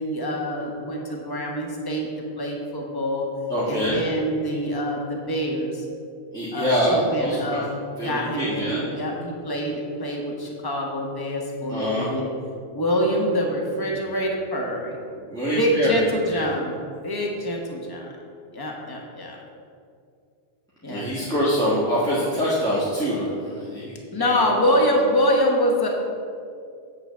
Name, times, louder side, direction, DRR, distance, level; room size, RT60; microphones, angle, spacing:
voice 1, 0.0-2.1 2.4-3.3 3.7-5.8 6.5-12.3 12.7-15.0 15.5-18.1 18.5-19.4 20.8-21.1 24.1-25.9, equal, 20° left, -1 dB, 1.1 m, -25 dB
voice 2, 3.5-4.0 6.3-7.6 8.0-8.9 11.7-12.1 15.3-16.0 16.3-16.4 20.9-24.5, equal, 5° left, -10 dB, 1.5 m, -25 dB
8.7 x 3.9 x 6.8 m, 2.3 s
omnidirectional pair, 1.1 m